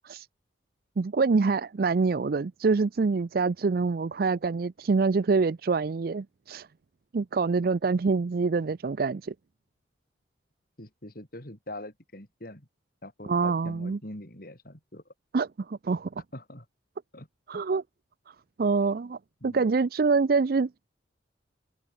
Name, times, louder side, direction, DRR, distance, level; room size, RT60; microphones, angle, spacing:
voice 1, 1.0-6.7 7.1-9.3 13.2-14.0 15.3-16.1 17.5-17.8 18.6-20.7, right 4 dB, 55° right, 0.4 m, -26 dB
voice 2, 10.8-12.7 13.0-15.0 16.3-16.7 17.1-17.3 17.5-17.6 19.4-19.7, left 1 dB, 55° left, 5.3 m, -43 dB
open air
head